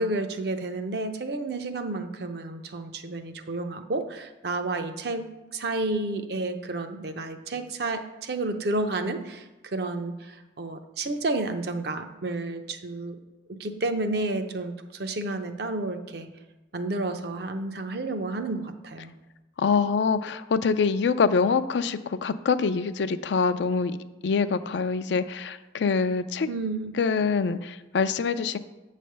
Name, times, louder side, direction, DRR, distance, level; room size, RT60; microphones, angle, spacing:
voice 1, 0.0-13.2 13.5-16.3 16.7-19.1 26.5-26.9, right 2 dB, 55° right, 7 dB, 0.6 m, -31 dB
voice 2, 19.6-24.0 24.2-26.5 27.0-28.6, left 5 dB, 70° left, 12 dB, 0.4 m, -25 dB
8.4 x 3.3 x 6.6 m, 1.1 s
head